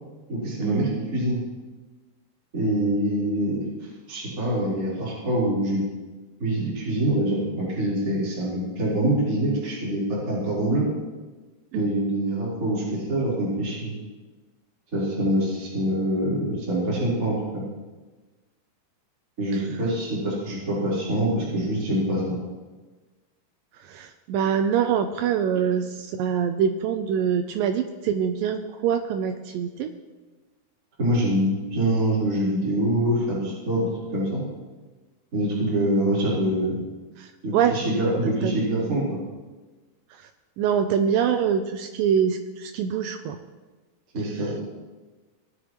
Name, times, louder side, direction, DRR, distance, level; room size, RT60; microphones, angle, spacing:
voice 1, 0.3-1.4 2.5-5.8 6.4-10.9 11.7-13.9 14.9-17.6 19.4-22.4 31.0-34.4 35.3-36.8 37.4-39.2 44.1-44.6, right 1 dB, 20° right, -9 dB, 4.3 m, -25 dB
voice 2, 23.8-29.9 37.2-37.8 38.2-39.0 40.2-40.3 40.6-43.4, right 8 dB, 90° right, 6 dB, 2.0 m, -25 dB
20.0 x 9.9 x 3.1 m, 1.3 s
omnidirectional pair, 4.6 m